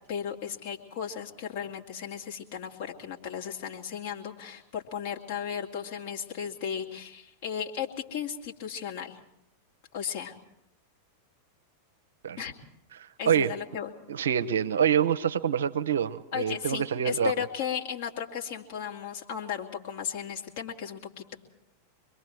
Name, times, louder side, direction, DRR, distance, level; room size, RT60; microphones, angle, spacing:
voice 1, 0.1-9.2 9.9-10.3 12.4-12.5 13.2-13.9 16.3-21.3, left 8 dB, 50° left, 0 dB, 2.5 m, -35 dB
voice 2, 14.1-17.3, right 8 dB, 65° right, 12 dB, 0.7 m, -26 dB
26.0 x 22.0 x 4.6 m, 0.82 s
figure-of-eight pair, 90°, 0 cm